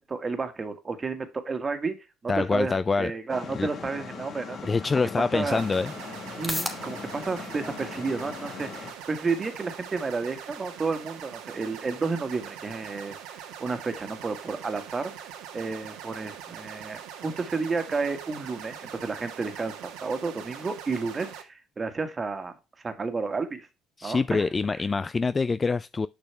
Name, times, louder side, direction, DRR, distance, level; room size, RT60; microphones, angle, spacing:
voice 1, 0.0-2.0 2.2-4.6 5.2-5.7 6.4-15.1 15.5-22.6 22.8-23.7 24.0-24.8, right 4 dB, 30° right, 1.6 m, -31 dB
voice 2, 2.3-3.1 3.5-3.7 4.6-5.9 24.0-26.1, left 4 dB, 30° left, 0.3 m, -25 dB
sound 1, 3.3-8.9, left 6 dB, 50° left, 1.4 m, -40 dB
sound 2, 5.0-21.9, left 1 dB, 5° left, 2.4 m, -46 dB
sound 3, 5.5-21.4, right 9 dB, 75° right, 1.4 m, -42 dB
6.8 x 6.0 x 3.3 m
hypercardioid pair, 70°, 0 cm